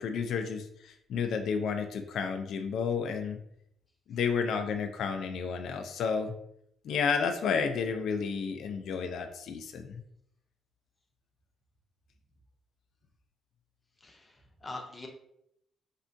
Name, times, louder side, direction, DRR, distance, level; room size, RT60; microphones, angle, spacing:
voice 1, 0.0-3.4 4.1-6.3 6.8-10.0, left 6 dB, 75° left, 6 dB, 0.3 m, -31 dB
voice 2, 14.0-15.1, left 2 dB, 25° left, 2 dB, 0.6 m, -44 dB
3.4 x 2.2 x 2.6 m, 0.73 s
cardioid pair, 90°, 0 cm